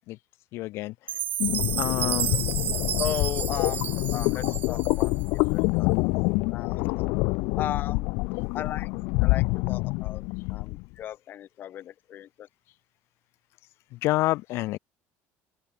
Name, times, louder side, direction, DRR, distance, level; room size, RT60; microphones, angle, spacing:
voice 1, 0.5-0.9 1.8-2.3 14.0-14.8, left 18 dB, 55° left, 0.7 m, -27 dB
Chime, 1.1-5.3, right 10 dB, 35° right, 2.5 m, -31 dB
sound 1, 1.4-10.8, left 27 dB, 75° left, 1.6 m, -26 dB
voice 2, 3.0-5.9 6.5-7.2 7.6-8.1 8.5-8.9 9.2-10.2 10.5-12.5, left 11 dB, 40° left, 5.0 m, -36 dB
open air
cardioid pair, 165°, 5 cm